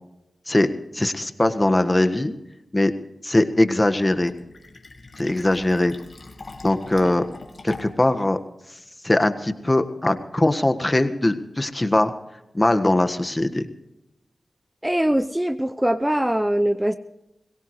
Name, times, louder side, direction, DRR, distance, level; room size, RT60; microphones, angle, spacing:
voice 1, 0.5-2.3 2.7-2.9 3.2-4.3 5.2-5.9 6.6-7.2 7.6-8.4 9.0-12.1 12.5-13.6, left 1 dB, 25° left, 8 dB, 1.5 m, -21 dB
Fill (with liquid), 4.1-8.1, left 3 dB, 60° left, 2.5 m, -42 dB
voice 2, 14.8-17.0, right 1 dB, 10° right, 11 dB, 0.7 m, -22 dB
22.5 x 17.5 x 3.2 m, 0.93 s
cardioid pair, 40°, 0 cm